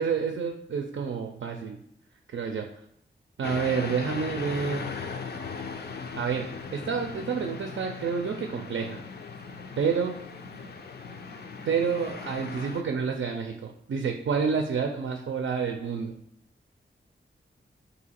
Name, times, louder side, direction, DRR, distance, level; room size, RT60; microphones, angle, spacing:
voice 1, 0.0-1.8 2.3-2.7 3.4-4.9 6.2-9.0 9.8-10.2 11.7-16.2, right 6 dB, 75° right, 3 dB, 0.4 m, -29 dB
sound 1, 3.4-12.8, left 5 dB, 55° left, 0.4 m, -38 dB
3.8 x 2.7 x 4.2 m, 0.73 s
wide cardioid pair, 120°, 20 cm